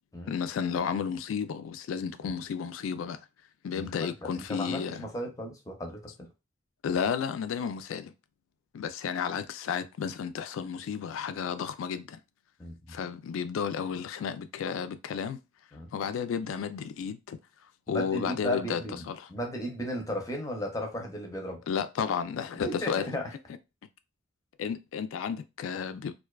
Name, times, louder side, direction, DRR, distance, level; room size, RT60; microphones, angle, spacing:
voice 1, 0.3-3.2 3.6-5.1 6.8-8.1 8.7-12.2 12.9-15.4 15.9-17.4 17.9-18.8 19.1-19.3 21.7-23.1 24.6-26.1, left 7 dB, 80° left, 0.3 m, -32 dB
voice 2, 3.7-6.1 12.6-13.0 15.7-15.9 17.9-21.6 22.6-23.3, equal, 15° left, 0.5 m, -35 dB
2.4 x 2.2 x 2.2 m
head